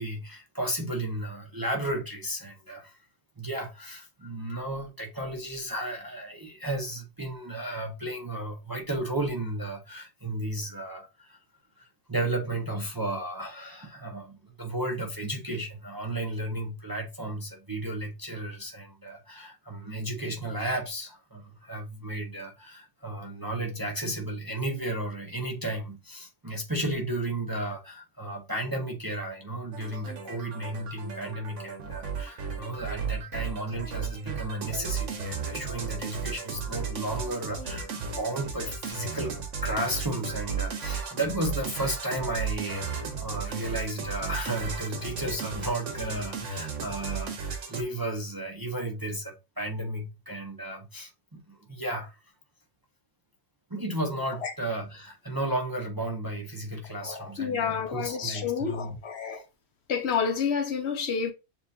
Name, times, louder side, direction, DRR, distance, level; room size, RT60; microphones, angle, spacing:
voice 1, 0.0-3.0 3.4-11.4 11.8-39.4 39.6-52.2 53.7-59.0, right 1 dB, 20° right, 0.6 m, -33 dB
sound 1, 29.7-47.8, right 6 dB, 70° right, 1.3 m, -35 dB
voice 2, 57.0-59.4 59.9-61.3, left 6 dB, 65° left, 0.9 m, -29 dB
7.0 x 2.5 x 2.7 m
omnidirectional pair, 1.3 m